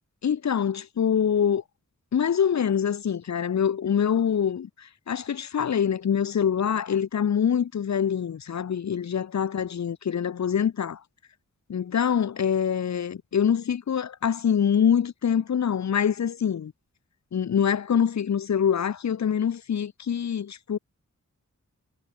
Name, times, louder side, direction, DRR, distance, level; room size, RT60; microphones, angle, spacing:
voice 1, 0.2-1.6 2.1-11.0 11.7-16.7 17.3-20.8, left 8 dB, 55° left, 0.6 m, -25 dB
cardioid pair, 45°, 33 cm